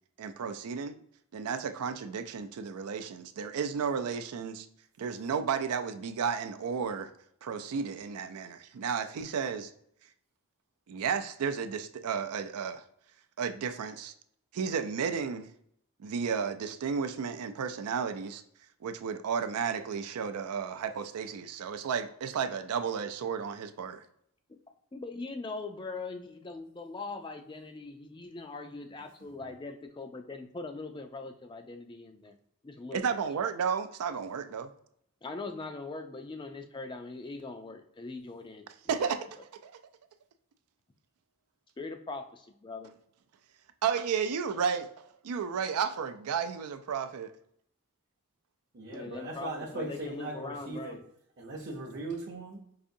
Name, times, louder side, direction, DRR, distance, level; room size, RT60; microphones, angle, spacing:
voice 1, 0.2-1.0 1.3-4.7 5.0-7.1 7.4-9.7 10.9-12.8 13.4-14.1 14.5-15.5 16.0-18.4 18.8-24.0 32.9-34.7 38.9-39.2 39.6-39.7 43.8-44.9 45.2-47.3, right 6 dB, 85° right, 9 dB, 0.4 m, -33 dB
voice 2, 24.9-32.3 32.6-33.3 35.2-39.1 41.8-42.9 48.9-51.0, left 3 dB, 20° left, 6 dB, 0.3 m, -41 dB
voice 3, 48.7-51.0 51.4-52.6, right 2 dB, 50° right, -5 dB, 0.7 m, -38 dB
4.9 x 2.5 x 2.6 m, 0.70 s
head